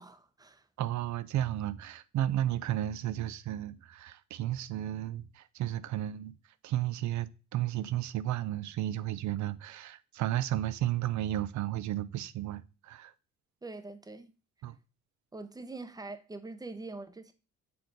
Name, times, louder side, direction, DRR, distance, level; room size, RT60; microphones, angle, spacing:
voice 1, 0.0-0.7 13.6-14.3 15.3-17.3, right 3 dB, 15° right, 0.7 m, -44 dB
voice 2, 0.8-6.3 6.6-13.1 14.6-14.8, right 13 dB, 70° right, 0.5 m, -33 dB
6.8 x 3.9 x 3.9 m
cardioid pair, 90°, 30 cm